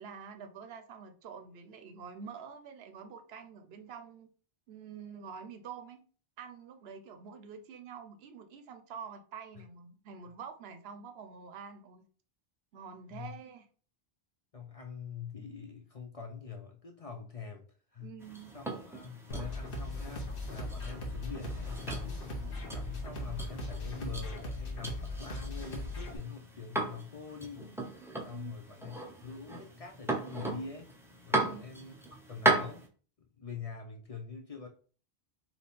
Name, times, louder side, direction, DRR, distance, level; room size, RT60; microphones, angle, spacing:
voice 1, 0.0-4.3 4.7-6.0 6.4-12.0 12.7-13.7 18.0-18.5 28.3-28.6 31.3-31.7, right 6 dB, 75° right, 0.9 m, -47 dB
voice 2, 14.5-17.6 17.9-18.2 18.5-22.2 22.7-27.8 28.2-30.9 31.2-31.9 32.3-32.9 33.2-34.7, left 5 dB, 45° left, 0.5 m, -44 dB
sound 1, 18.2-32.9, right 2 dB, 5° right, 0.5 m, -37 dB
sound 2, 19.3-26.2, left 1 dB, 60° left, 1.1 m, -38 dB
3.5 x 2.9 x 4.1 m
omnidirectional pair, 1.0 m